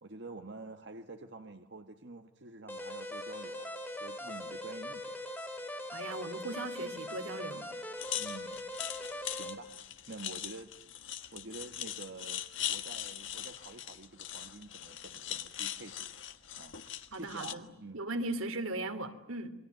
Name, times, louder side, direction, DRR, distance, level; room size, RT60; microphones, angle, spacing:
voice 1, 0.0-3.7 4.0-5.2 8.1-8.6 9.2-9.7 10.1-10.7 11.3-12.4 12.7-16.1 16.6-16.8 17.2-18.0, right 3 dB, 55° right, 6 dB, 1.3 m, -48 dB
sound 1, 2.7-9.5, left 1 dB, 10° left, 3.7 m, -41 dB
voice 2, 5.9-7.6 17.1-17.7 17.9-19.5, right 2 dB, 90° right, 8 dB, 2.8 m, -38 dB
sound 2, 8.0-17.5, left 11 dB, 65° left, 1.6 m, -41 dB
28.5 x 22.5 x 9.3 m, 0.88 s
head